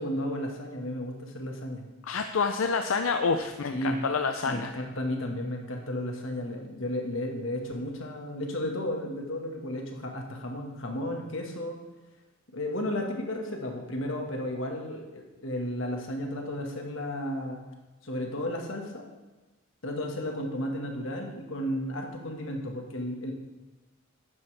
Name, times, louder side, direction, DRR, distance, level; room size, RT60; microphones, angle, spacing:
voice 1, 0.0-1.8 3.7-4.0 4.5-11.8 12.5-17.6 18.0-19.1 19.8-23.3, left 1 dB, 70° left, 2 dB, 1.7 m, -33 dB
voice 2, 2.0-4.7, left 5 dB, 90° left, 7 dB, 0.5 m, -28 dB
11.5 x 9.4 x 3.4 m, 1.1 s
head